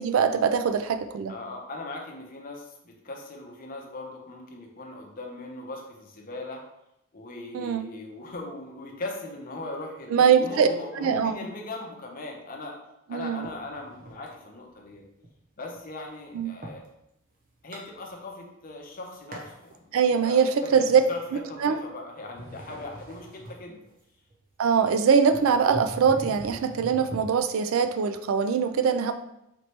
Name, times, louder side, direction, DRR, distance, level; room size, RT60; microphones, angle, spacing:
voice 1, 0.0-1.3 7.5-7.9 10.1-10.7 11.0-11.3 13.1-13.4 16.3-16.5 19.9-21.0 21.6-21.8 24.6-29.1, right 6 dB, 80° right, 9 dB, 0.3 m, -22 dB
voice 2, 1.3-6.6 7.1-12.8 13.1-15.0 15.6-16.8 17.6-23.8, left 2 dB, 45° left, 1 dB, 0.7 m, -39 dB
sound 1, 13.4-14.4 14.8-16.9 17.3-18.6 18.8-19.7 20.2-21.9 22.2-27.2, right 1 dB, 45° right, 0.8 m, -42 dB
4.3 x 3.1 x 2.9 m, 0.83 s
head